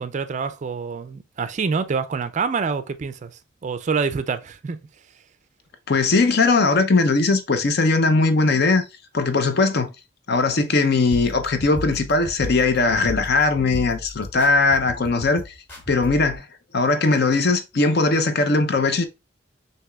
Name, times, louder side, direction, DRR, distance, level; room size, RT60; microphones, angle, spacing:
voice 1, 0.0-4.8, right 5 dB, 40° right, 0.4 m, -26 dB
voice 2, 5.9-8.8 9.1-9.9 10.3-15.4 15.9-16.5 16.7-19.0, left 3 dB, 55° left, 0.6 m, -19 dB
sound 1, 11.1-16.4, left 1 dB, 10° left, 2.8 m, -35 dB
6.1 x 2.9 x 2.3 m
head